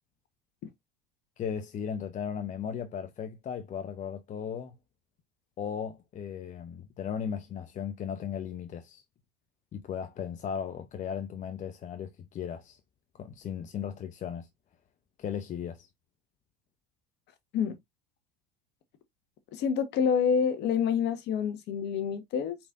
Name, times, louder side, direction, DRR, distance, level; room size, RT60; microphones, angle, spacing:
voice 1, 1.4-4.8 5.6-9.0 9.7-12.8 13.2-14.5 15.2-15.9, left 8 dB, 35° left, 0.7 m, -36 dB
voice 2, 19.5-22.6, left 7 dB, 55° left, 1.2 m, -27 dB
4.9 x 4.3 x 2.5 m
hypercardioid pair, 75°, 21 cm